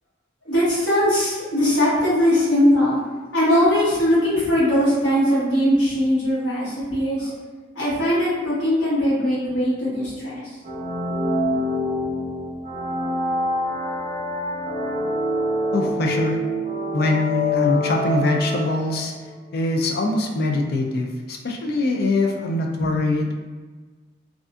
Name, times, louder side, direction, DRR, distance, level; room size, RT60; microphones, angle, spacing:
voice 1, 0.4-3.0 3.3-7.3 7.7-10.4 22.8-22.9, equal, 80° left, -10 dB, 1.1 m, -20 dB
sound 1, 10.6-19.3, left 1 dB, 35° right, 0.5 m, -26 dB
voice 2, 15.7-16.4 16.9-19.1 19.5-23.3, left 2 dB, 55° left, 2 dB, 0.4 m, -23 dB
2.5 x 2.4 x 2.3 m, 1.3 s
head